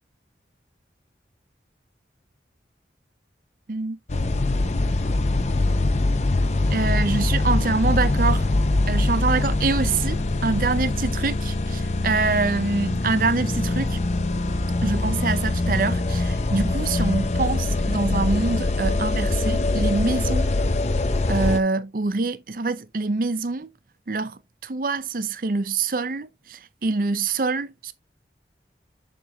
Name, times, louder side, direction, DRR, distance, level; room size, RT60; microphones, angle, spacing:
sound 1, 4.1-21.6, left 2 dB, 40° left, 0.6 m, -23 dB
voice 1, 6.7-8.5 8.9-14.0 14.8-20.5 21.3-23.7 24.1-27.9, right 3 dB, 50° right, 0.6 m, -25 dB
7.2 x 6.8 x 2.3 m
head